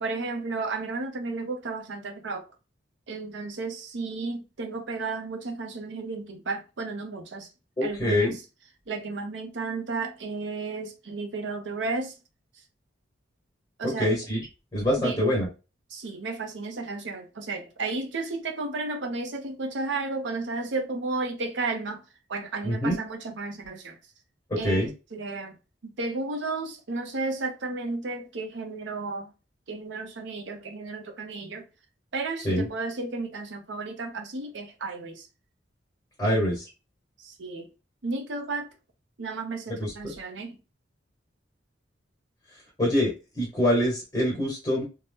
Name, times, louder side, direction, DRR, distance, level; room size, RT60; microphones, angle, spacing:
voice 1, 0.0-2.4 3.1-7.5 7.8-8.4 8.9-12.1 13.8-14.1 15.0-15.2 15.9-22.0 22.3-24.0 24.6-24.8 25.1-25.6 25.8-29.3 29.7-31.7 32.1-35.2 36.2-36.4 37.2-37.7 38.0-38.7 39.2-40.6, right 3 dB, 75° right, 0.6 m, -33 dB
voice 2, 7.8-8.3 13.8-14.5 14.7-15.5 22.6-22.9 24.6-24.9 32.4-32.7 36.2-36.6 39.8-40.1 42.8-44.8, equal, 20° left, 1.1 m, -25 dB
2.7 x 2.1 x 3.4 m
head